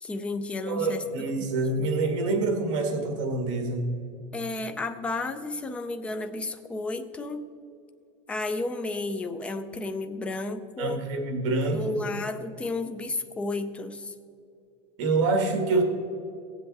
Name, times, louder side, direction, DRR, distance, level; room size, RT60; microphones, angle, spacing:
voice 1, 0.0-1.0 1.8-1.9 4.3-7.4 8.3-11.1 11.7-14.1, left 2 dB, 5° left, 8 dB, 0.4 m, -32 dB
voice 2, 0.7-3.9 10.8-12.0 15.0-15.8, right 3 dB, 65° right, 4 dB, 1.8 m, -26 dB
17.0 x 7.8 x 4.1 m, 2.6 s
supercardioid pair, 170°, 17 cm